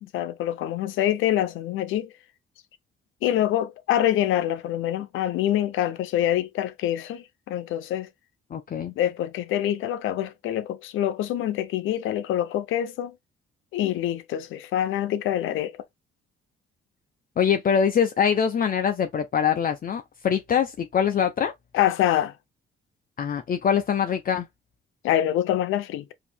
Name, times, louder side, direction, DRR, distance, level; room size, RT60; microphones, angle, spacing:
voice 1, 0.0-2.1 3.2-8.1 9.0-13.1 13.7-15.7 21.7-22.3 25.0-26.1, left 12 dB, 90° left, 0.7 m, -25 dB
voice 2, 8.5-8.9 17.4-21.5 23.2-24.5, left 7 dB, 45° left, 0.6 m, -23 dB
4.9 x 2.8 x 3.5 m
cardioid pair, 90°, 20 cm